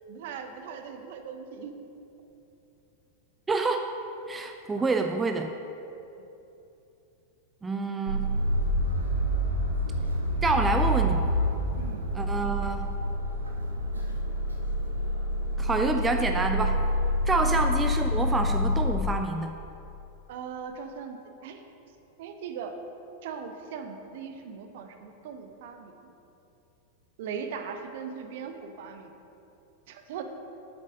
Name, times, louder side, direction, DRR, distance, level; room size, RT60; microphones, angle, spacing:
voice 1, 0.1-1.7 4.8-4.9 6.2-6.3 11.8-12.0 17.4-17.6 20.3-21.6 22.2-22.7 23.2-26.1 27.2-29.1 29.9-30.2, right 6 dB, 55° right, 6 dB, 0.8 m, -39 dB
voice 2, 3.5-3.9 4.3-5.5 7.6-8.3 10.4-11.2 12.1-12.9 15.6-16.8 17.3-19.5, right 3 dB, 15° right, 5 dB, 0.4 m, -27 dB
sound 1, 8.1-18.9, equal, 75° right, 1.1 m, -27 dB
7.7 x 7.4 x 5.2 m, 2.9 s
figure-of-eight pair, 90°, 0 cm